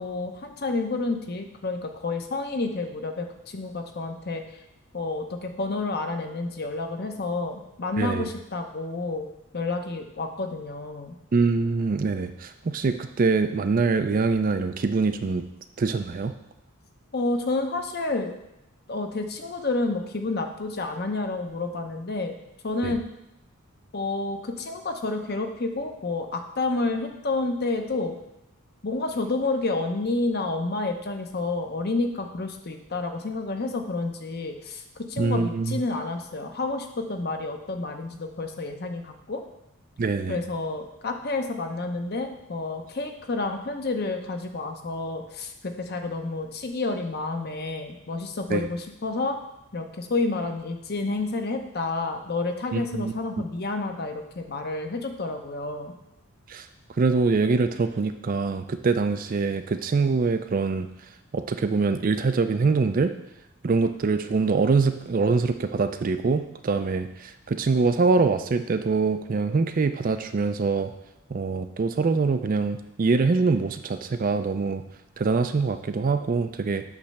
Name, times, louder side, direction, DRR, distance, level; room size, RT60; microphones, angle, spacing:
voice 1, 0.0-4.6 4.9-9.3 9.5-11.2 17.1-18.3 18.9-22.4 22.6-23.0 23.9-28.2 28.8-39.4 40.3-49.4 49.7-55.9, left 3 dB, 45° left, 5 dB, 0.8 m, -29 dB
voice 2, 8.0-8.3 11.3-15.4 15.8-16.3 22.8-22.9 35.2-35.8 40.0-40.4 48.5-48.6 52.7-53.1 56.5-56.7 57.0-60.9 61.3-63.1 63.6-70.9 71.3-74.8 75.2-76.8, right 4 dB, 40° right, 9 dB, 0.4 m, -24 dB
8.5 x 3.3 x 6.5 m, 0.87 s
head